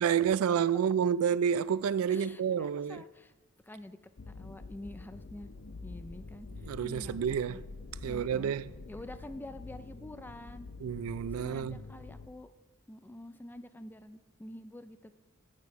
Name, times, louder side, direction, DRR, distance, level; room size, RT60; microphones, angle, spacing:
voice 1, 0.0-3.0 6.7-7.6 8.0-8.7 10.8-11.8, right 8 dB, 75° right, 0.3 m, -29 dB
voice 2, 2.1-3.3 3.6-4.0 4.3-5.5 5.8-7.2 7.5-7.6 8.0-8.5 8.9-10.7 11.3-12.5 12.9-15.1, left 1 dB, 10° left, 0.3 m, -47 dB
sound 1, 4.2-12.3, left 3 dB, 90° left, 0.7 m, -46 dB
9.6 x 8.0 x 4.8 m
head